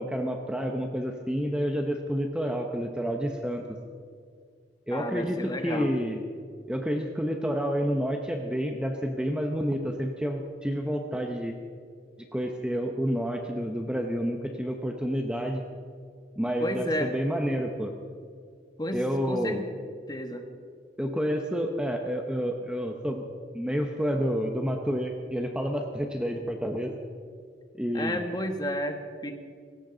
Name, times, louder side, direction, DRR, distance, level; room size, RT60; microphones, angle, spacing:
voice 1, 0.0-3.6 4.9-6.2 6.7-11.6 12.3-15.6 16.4-17.9 18.9-19.6 21.0-23.2 23.5-27.0 27.8-28.2, equal, 5° right, 3 dB, 0.8 m, -29 dB
voice 2, 4.9-5.9 16.6-17.1 18.8-19.6 20.1-20.5 27.9-29.3, left 1 dB, 25° left, 5 dB, 1.4 m, -32 dB
19.0 x 16.5 x 3.9 m, 2.1 s
head